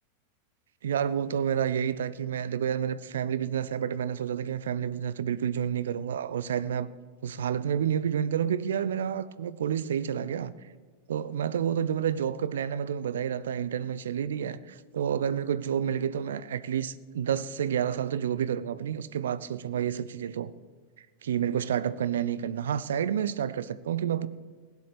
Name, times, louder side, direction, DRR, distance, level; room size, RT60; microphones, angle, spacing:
voice 1, 0.8-6.9 7.2-10.5 11.1-20.5 21.0-24.3, right 8 dB, 65° right, 0.6 m, -29 dB
16.5 x 11.0 x 6.9 m
figure-of-eight pair, 90°, 0 cm